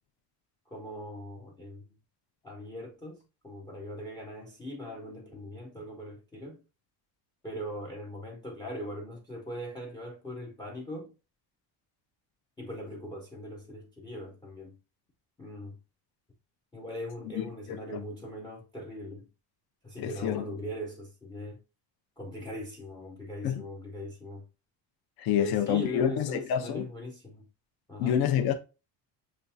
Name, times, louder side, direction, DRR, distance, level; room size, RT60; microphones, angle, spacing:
voice 1, 0.7-1.9 2.4-6.6 7.4-11.1 12.6-14.8 15.4-15.8 16.7-19.3 19.8-21.6 22.2-24.5 25.4-27.5 27.9-28.2, left 1 dB, 10° left, 0.5 m, -40 dB
voice 2, 17.4-18.0 20.0-20.4 23.4-23.6 25.2-26.8 28.0-28.5, left 9 dB, 55° left, 0.6 m, -28 dB
6.8 x 2.3 x 2.6 m
cardioid pair, 165°, 44 cm